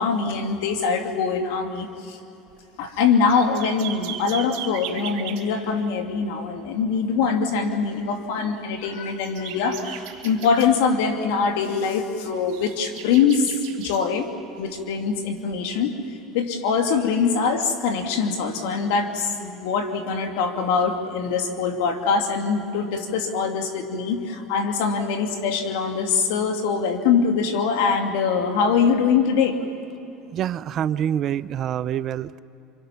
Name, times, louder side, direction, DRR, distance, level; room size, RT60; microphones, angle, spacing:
voice 1, 0.0-2.2 2.8-14.3 14.6-15.9 16.3-29.6, left 5 dB, 80° left, 5 dB, 2.4 m, -23 dB
sound 1, 2.5-2.6 2.9-5.5 8.4-11.3 11.6-11.9 12.3-14.0 15.5-15.6, right 10 dB, 65° right, 3.5 m, -38 dB
voice 2, 30.3-32.4, right 10 dB, 45° right, 16 dB, 0.6 m, -26 dB
28.0 x 26.0 x 5.9 m, 2.9 s
supercardioid pair, 105°, 0 cm